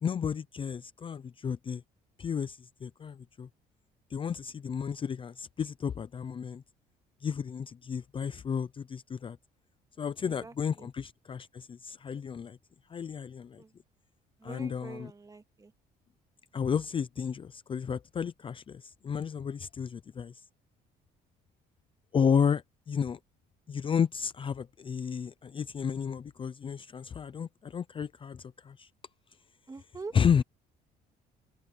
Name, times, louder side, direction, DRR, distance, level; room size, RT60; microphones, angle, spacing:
voice 1, 0.0-1.8 2.2-3.5 4.1-6.6 7.2-9.4 10.0-12.6 12.9-13.6 14.4-15.1 16.5-20.4 22.1-23.2 23.7-28.9 30.1-30.4, left 7 dB, 30° left, 0.5 m, -32 dB
voice 2, 10.2-10.9 13.6-13.7 14.4-15.7 29.7-30.1, right 3 dB, 20° right, 2.3 m, -45 dB
open air
cardioid pair, 110°, 17 cm